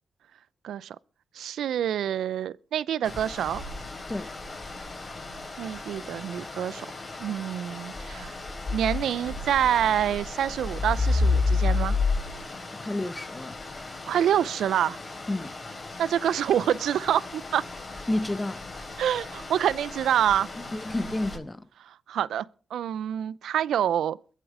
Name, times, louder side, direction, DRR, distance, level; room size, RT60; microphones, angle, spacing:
voice 1, 0.6-1.0 1.3-3.6 5.6-6.9 7.2-8.3 8.7-12.0 14.1-15.0 16.0-17.6 19.0-20.5 22.1-22.5 22.7-24.2, right 10 dB, 80° right, 0.5 m, -26 dB
sound 1, 3.0-21.4, left 3 dB, 40° left, 5.2 m, -32 dB
voice 2, 12.7-13.6 15.3-15.5 18.1-18.6 20.7-21.7, left 1 dB, 20° left, 0.9 m, -30 dB
22.5 x 7.5 x 4.9 m
supercardioid pair, 45°, 0 cm